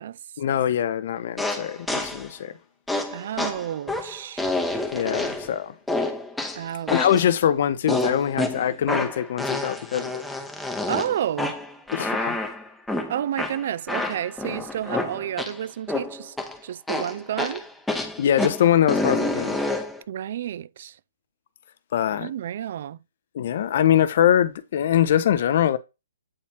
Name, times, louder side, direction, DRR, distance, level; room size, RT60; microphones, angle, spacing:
voice 1, 0.4-2.6 4.9-5.7 6.9-10.2 11.9-12.4 18.2-19.6 21.9-22.3 23.3-25.8, left 10 dB, 45° left, 0.7 m, -23 dB
sound 1, 1.4-2.3 2.9-5.6 5.9-7.3 7.9-15.6 15.9-16.6 16.9-20.0, left 2 dB, 5° left, 0.8 m, -28 dB
voice 2, 3.1-4.4 6.6-7.1 10.9-11.6 13.1-16.4 16.6-17.7 20.1-21.0 22.1-23.0, right 10 dB, 45° right, 0.3 m, -30 dB
8.7 x 4.2 x 2.7 m
figure-of-eight pair, 125°, 0 cm